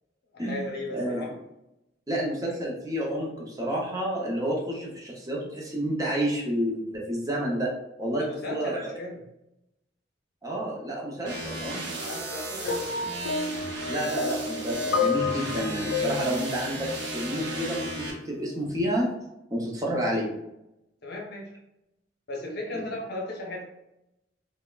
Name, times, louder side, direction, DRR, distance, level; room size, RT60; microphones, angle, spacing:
voice 1, 0.3-1.3 8.2-9.2 12.0-12.9 21.0-21.5 22.3-23.6, left 2 dB, 55° left, -1 dB, 0.7 m, -36 dB
voice 2, 0.9-1.3 2.1-7.7 8.0-8.9 10.4-11.8 13.9-19.1 19.5-20.3 22.7-22.9, right 1 dB, 20° right, -3 dB, 0.6 m, -30 dB
sound 1, 11.3-18.1, right 2 dB, 60° right, 0.7 m, -35 dB
sound 2, 12.7-17.8 18.7-18.9, left 4 dB, 75° left, 0.3 m, -31 dB
4.5 x 2.1 x 2.3 m, 0.89 s
head